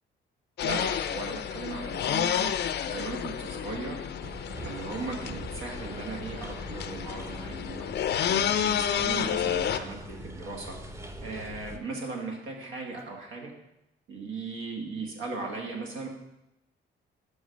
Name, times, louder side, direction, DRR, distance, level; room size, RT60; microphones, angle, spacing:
sound 1, 0.6-9.8, left 9 dB, 60° left, 0.5 m, -30 dB
voice 1, 0.6-2.5 2.8-4.1 4.6-7.9 8.2-10.8 11.2-13.5 14.1-16.1, right 3 dB, 80° right, 1 dB, 1.5 m, -37 dB
sound 2, 4.2-11.8, right 1 dB, 15° right, 0.7 m, -42 dB
6.2 x 5.0 x 5.1 m, 0.89 s
cardioid pair, 90°, 20 cm